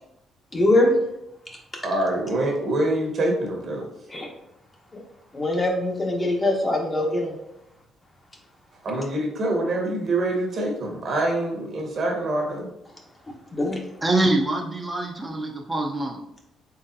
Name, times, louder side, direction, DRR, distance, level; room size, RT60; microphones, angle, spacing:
voice 1, 0.5-0.9 4.1-4.3 5.3-7.3 13.5-13.9, left 1 dB, 25° left, 0 dB, 1.0 m, -22 dB
voice 2, 1.8-3.8 8.8-12.7, right 1 dB, 55° right, 1 dB, 1.1 m, -25 dB
voice 3, 14.0-16.2, right 2 dB, 15° right, 0 dB, 0.6 m, -24 dB
3.9 x 3.4 x 2.7 m, 0.81 s
cardioid pair, 90°, 0 cm